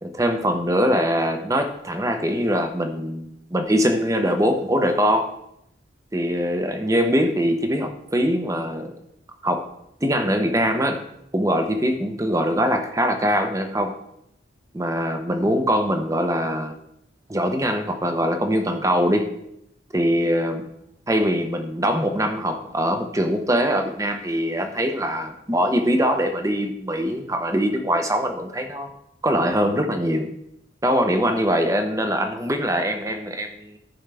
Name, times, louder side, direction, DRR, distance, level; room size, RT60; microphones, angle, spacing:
voice 1, 0.0-5.3 6.1-8.9 9.4-9.6 10.0-11.0 11.3-13.9 14.7-16.7 17.3-19.3 19.9-20.6 21.1-28.9 29.2-30.3 30.8-33.8, equal, 15° right, 6 dB, 0.8 m, -22 dB
13.5 x 5.4 x 3.4 m, 0.79 s
head